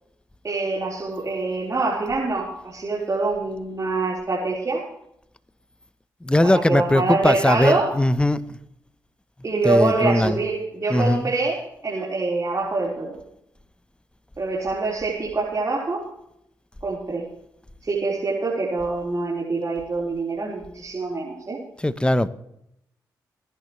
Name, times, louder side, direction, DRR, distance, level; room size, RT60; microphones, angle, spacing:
voice 1, 0.4-4.8 6.4-7.9 9.4-13.2 14.4-16.1 16.8-17.2 17.8-21.6, right 3 dB, 40° right, 4.6 m, -25 dB
voice 2, 6.2-8.6 9.6-10.4 10.9-11.3 21.8-22.3, left 1 dB, 10° left, 1.0 m, -20 dB
21.0 x 11.0 x 3.3 m
supercardioid pair, 50°, 8 cm